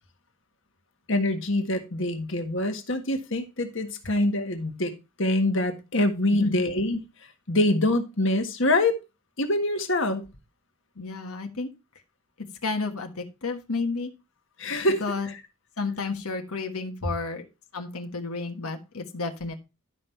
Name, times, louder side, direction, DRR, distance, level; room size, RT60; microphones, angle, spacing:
voice 1, 1.1-4.9 5.2-7.0 7.5-9.0 9.4-10.2 14.6-15.0 15.3-15.4 17.0-17.1, left 1 dB, 55° left, 1.6 m, -25 dB
voice 2, 11.0-11.7 12.6-14.1 15.0-15.3 15.8-17.4 17.7-19.5, left 3 dB, 80° left, 1.4 m, -31 dB
12.0 x 5.5 x 4.5 m
head